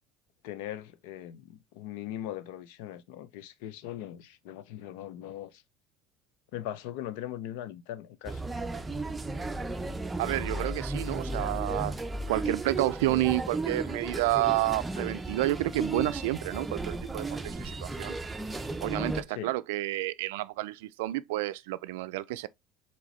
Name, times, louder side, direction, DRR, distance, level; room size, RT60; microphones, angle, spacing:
voice 1, 0.4-5.6 6.5-8.5 19.3-19.5, left 12 dB, 75° left, 0.5 m, -40 dB
sound 1, 8.2-19.2, right 2 dB, 15° right, 0.6 m, -34 dB
voice 2, 10.2-11.9 12.3-18.2 18.8-22.5, right 17 dB, 80° right, 0.3 m, -30 dB
4.2 x 3.6 x 3.1 m
supercardioid pair, 85°, 0 cm